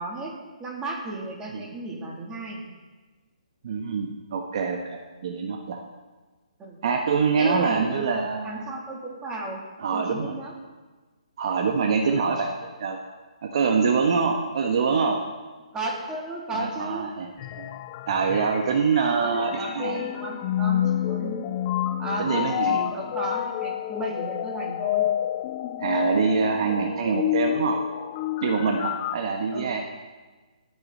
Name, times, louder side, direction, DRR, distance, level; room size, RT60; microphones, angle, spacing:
voice 1, 0.0-2.6 6.6-6.8 7.4-8.0 8.4-9.6 9.9-10.5 12.1-12.3 15.7-17.1 19.2-21.4 22.0-25.1 29.5-29.7, right 2 dB, 15° right, -3 dB, 3.3 m, -34 dB
voice 2, 3.6-5.8 6.8-8.6 9.8-10.3 11.4-13.0 13.4-15.2 16.5-17.3 17.6-17.7 18.1-20.0 22.2-22.8 25.8-27.8 28.4-29.8, right 5 dB, 50° right, 3 dB, 1.4 m, -25 dB
sound 1, 17.4-29.2, left 12 dB, 30° left, 0.5 m, -29 dB
25.5 x 9.6 x 4.2 m, 1.3 s
hypercardioid pair, 145°, 4 cm